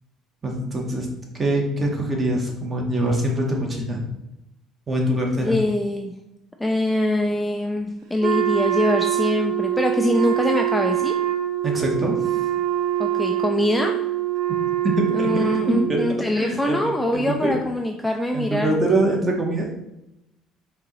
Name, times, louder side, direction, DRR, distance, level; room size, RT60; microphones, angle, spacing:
voice 1, 0.4-1.1 1.3-4.0 4.9-5.5 11.6-12.3 14.8-16.1 16.4-17.6 18.3-19.6, right 1 dB, 25° right, 0 dB, 1.0 m, -24 dB
voice 2, 5.4-6.1 6.6-11.1 13.0-13.9 15.1-18.7, left 1 dB, 5° left, 2 dB, 0.4 m, -23 dB
Wind instrument woodwind instrument, 8.2-16.1, right 12 dB, 70° right, 0.7 m, -24 dB
4.5 x 2.8 x 3.8 m, 0.86 s
cardioid pair, 125°, 0 cm